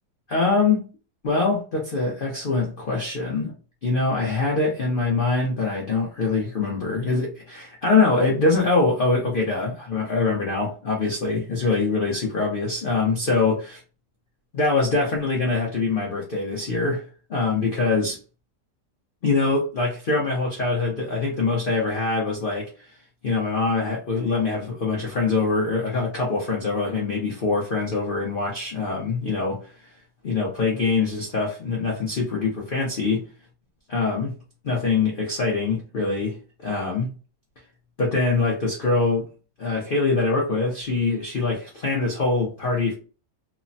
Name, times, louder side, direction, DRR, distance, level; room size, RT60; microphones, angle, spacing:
voice 1, 0.3-0.9 1.2-3.5 3.8-13.8 14.5-17.0 17.3-18.2 19.2-22.9 23.2-29.9 30.2-33.2 33.9-34.3 34.6-36.4 36.6-37.1 38.0-39.2 39.6-42.9, left 3 dB, 65° left, 0.5 m, -23 dB
3.2 x 2.1 x 2.5 m
omnidirectional pair, 1.9 m